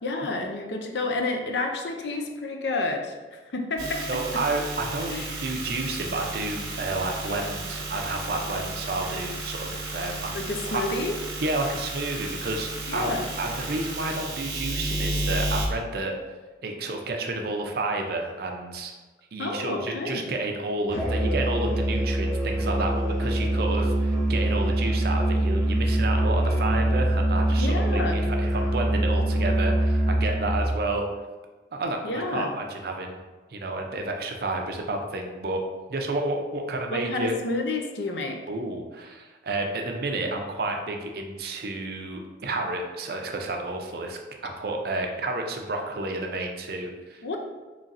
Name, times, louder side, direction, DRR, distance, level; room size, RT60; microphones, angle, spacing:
voice 1, 0.0-4.4 5.1-5.4 10.3-11.2 12.9-13.3 19.4-20.2 27.6-28.2 32.0-32.5 36.9-38.4 47.2-47.4, left 2 dB, 70° left, 3 dB, 0.5 m, -30 dB
sound 1, 3.8-15.7, right 1 dB, 80° right, 0.8 m, -33 dB
voice 2, 4.1-5.1 5.4-10.9 11.4-13.1 13.4-16.2 16.6-18.9 19.3-31.1 31.7-33.2 33.5-37.4 38.5-47.4, right 2 dB, 55° right, 3 dB, 0.5 m, -30 dB
Musical instrument, 20.9-30.8, right 1 dB, 5° right, 0.9 m, -24 dB
4.0 x 3.0 x 2.5 m, 1.2 s
head